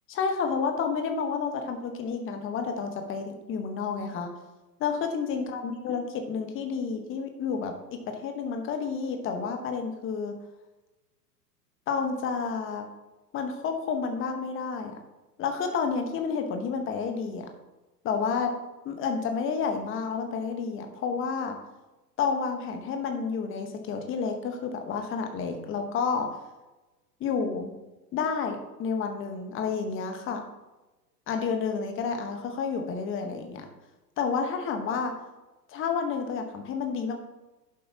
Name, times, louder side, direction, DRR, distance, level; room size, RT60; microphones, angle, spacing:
voice 1, 0.1-4.3 4.8-10.3 11.9-12.8 13.3-14.9 15.4-17.5 18.0-18.5 18.8-21.6 22.2-26.3 27.2-27.7 28.1-30.4 31.3-33.7 34.2-35.1 35.7-37.2, left 5 dB, 25° left, 5 dB, 1.4 m, -30 dB
11.0 x 7.6 x 3.0 m, 1.1 s
figure-of-eight pair, 100°, 49 cm